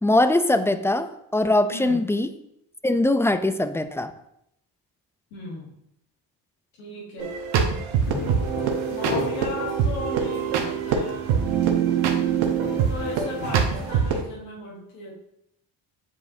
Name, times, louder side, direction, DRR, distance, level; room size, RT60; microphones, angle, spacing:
voice 1, 0.0-2.3 2.8-4.1, left 1 dB, 5° left, 10 dB, 0.4 m, -21 dB
voice 2, 1.7-2.1 5.3-5.8 6.8-7.4 8.9-11.3 12.7-15.2, left 2 dB, 90° left, -4 dB, 1.3 m, -36 dB
sound 1, 7.2-14.2, right 7 dB, 70° right, 1.0 m, -24 dB
sound 2, 8.0-13.9, left 1 dB, 75° left, 1.7 m, -36 dB
8.3 x 4.9 x 2.7 m, 0.79 s
supercardioid pair, 55°, 48 cm